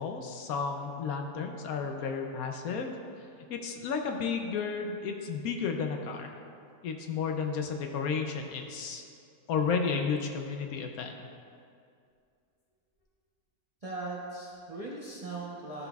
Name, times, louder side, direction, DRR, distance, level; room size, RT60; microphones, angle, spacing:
voice 1, 0.0-6.4 6.8-9.0 9.5-11.2, left 5 dB, 70° left, 4 dB, 0.9 m, -33 dB
voice 2, 13.8-15.9, right 2 dB, 40° right, -5 dB, 0.5 m, -39 dB
12.5 x 5.9 x 2.3 m, 2.4 s
omnidirectional pair, 1.8 m